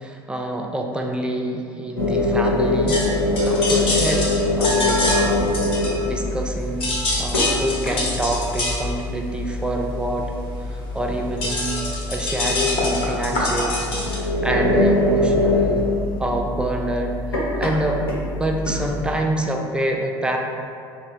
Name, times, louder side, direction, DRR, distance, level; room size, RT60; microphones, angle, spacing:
voice 1, 0.0-5.6 6.0-10.3 10.7-11.7 12.1-15.8 16.2-17.2 17.6-18.0 18.3-20.4, right 1 dB, 10° right, 1 dB, 0.3 m, -26 dB
sound 1, 2.0-19.2, left 2 dB, 85° left, 0.5 m, -24 dB
sound 2, 2.9-6.5 6.7-14.2, left 2 dB, 50° left, 0.9 m, -25 dB
3.3 x 2.0 x 3.1 m, 2.3 s
hypercardioid pair, 70°, 12 cm